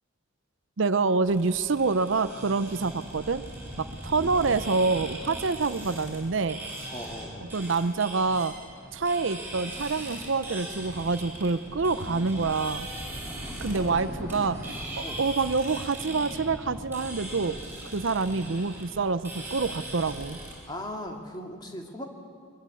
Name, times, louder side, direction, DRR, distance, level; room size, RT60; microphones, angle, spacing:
voice 1, 0.8-3.4 3.8-6.6 7.5-8.5 8.9-12.9 13.6-14.6 15.0-17.6 17.9-20.4, right 4 dB, 65° right, 13 dB, 0.7 m, -26 dB
sound 1, 1.2-20.5, right 1 dB, 10° right, 7.8 m, -39 dB
voice 2, 6.9-7.5 13.7-14.0 14.4-14.5 15.0-15.2 20.7-22.0, left 1 dB, 20° left, 2 dB, 2.3 m, -38 dB
22.5 x 22.5 x 8.4 m, 2.2 s
head